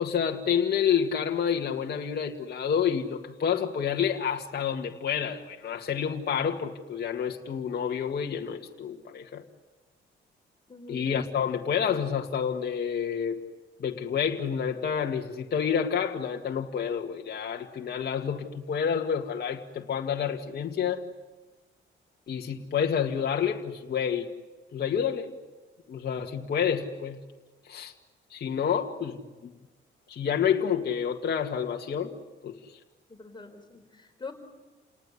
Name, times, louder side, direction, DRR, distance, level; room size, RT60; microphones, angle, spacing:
voice 1, 0.0-9.4 10.9-13.4 13.8-21.0 22.3-24.3 24.7-25.3 25.9-27.2 27.7-27.9 28.3-29.5 30.1-32.1 32.4-32.8, left 7 dB, 55° left, 1 dB, 2.0 m, -29 dB
voice 2, 10.7-11.1 33.1-34.3, left 4 dB, 20° left, 4 dB, 4.8 m, -44 dB
29.5 x 19.5 x 10.0 m, 1.2 s
cardioid pair, 90°, 20 cm